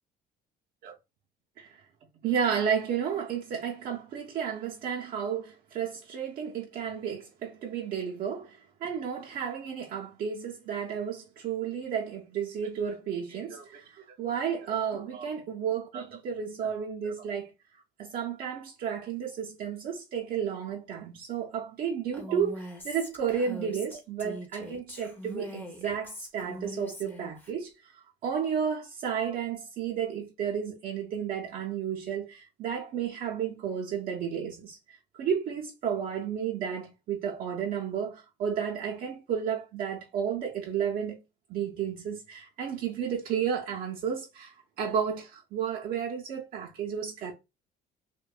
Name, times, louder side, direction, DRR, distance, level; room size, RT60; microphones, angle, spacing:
voice 1, 2.2-17.5 18.0-27.9 28.2-34.8 35.1-41.2 41.5-47.3, right 7 dB, 60° right, 0.5 m, -32 dB
Female speech woman speaking, 22.1-27.5, equal, 10° left, 0.6 m, -42 dB
2.6 x 2.1 x 2.3 m
cardioid pair, 110°, 17 cm